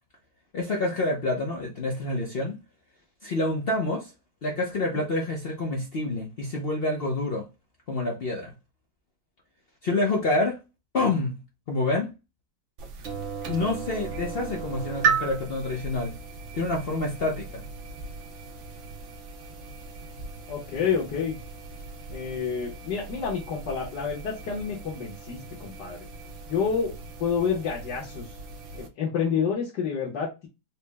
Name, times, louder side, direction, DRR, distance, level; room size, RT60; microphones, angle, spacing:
voice 1, 0.5-2.6 3.2-4.1 4.4-7.5 7.9-8.5 9.8-10.6 10.9-11.4 11.7-12.1 13.5-16.1 16.5-17.7, left 2 dB, 55° left, 0.6 m, -27 dB
sound 1, 12.8-28.9, right 6 dB, 60° right, 0.8 m, -36 dB
voice 2, 20.5-21.4 22.1-26.1 26.5-26.9 27.2-28.3 28.7-30.5, left 6 dB, 85° left, 1.6 m, -29 dB
4.4 x 2.0 x 3.3 m
omnidirectional pair, 1.8 m